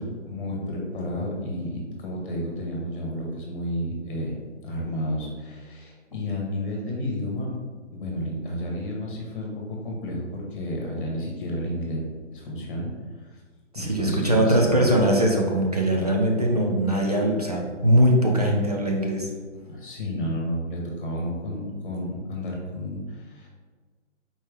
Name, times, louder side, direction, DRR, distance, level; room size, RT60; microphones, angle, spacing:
voice 1, 0.0-4.4 4.6-7.5 7.9-12.0 12.3-12.9 13.2-13.4 13.7-15.2 19.6-23.5, equal, 45° left, -2 dB, 1.3 m, -31 dB
voice 2, 13.7-19.3, right 1 dB, 35° right, -1 dB, 0.5 m, -21 dB
4.3 x 3.3 x 3.4 m, 1.5 s
hypercardioid pair, 175°, 37 cm